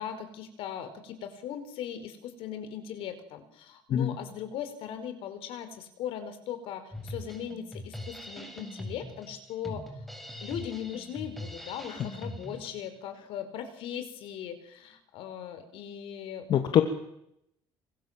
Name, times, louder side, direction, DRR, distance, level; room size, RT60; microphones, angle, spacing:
voice 1, 0.0-10.0 10.4-16.5, left 9 dB, 85° left, 10 dB, 5.2 m, -39 dB
Drum kit, 6.9-12.9, left 1 dB, ahead, 6.9 m, -42 dB
voice 2, 16.5-16.8, left 10 dB, 60° left, 6 dB, 2.6 m, -24 dB
27.0 x 25.0 x 7.7 m, 0.77 s
cardioid pair, 115°, 9 cm